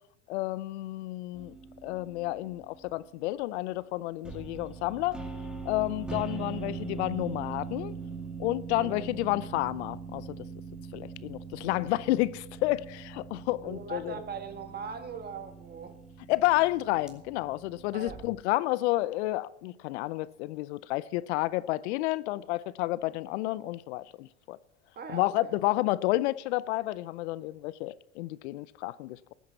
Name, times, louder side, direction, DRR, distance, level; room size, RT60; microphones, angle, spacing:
voice 1, 0.3-1.5 1.8-5.2 5.6-7.9 8.4-10.4 10.9-14.2 16.3-24.6 25.1-29.3, left 18 dB, 70° left, 0.6 m, -30 dB
sound 1, 1.3-2.9 4.2-18.3, right 5 dB, ahead, 2.3 m, -42 dB
voice 2, 13.6-16.0 17.9-18.2 25.0-25.6, right 5 dB, 25° right, 1.8 m, -40 dB
13.5 x 8.4 x 6.9 m
hypercardioid pair, 95°, 35 cm